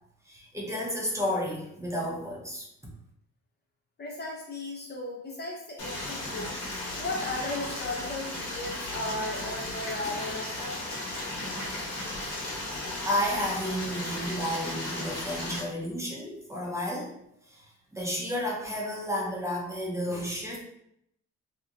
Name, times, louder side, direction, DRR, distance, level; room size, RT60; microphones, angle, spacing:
voice 1, 0.3-2.9 13.1-17.1 17.5-17.7 17.9-20.6, equal, 10° right, -3 dB, 0.7 m, -32 dB
voice 2, 4.0-6.6 7.0-10.8, left 2 dB, 35° left, -1 dB, 0.5 m, -36 dB
Stream, 5.8-15.6, left 1 dB, 55° left, 0.9 m, -35 dB
2.8 x 2.1 x 2.4 m, 0.75 s
cardioid pair, 90°, 30 cm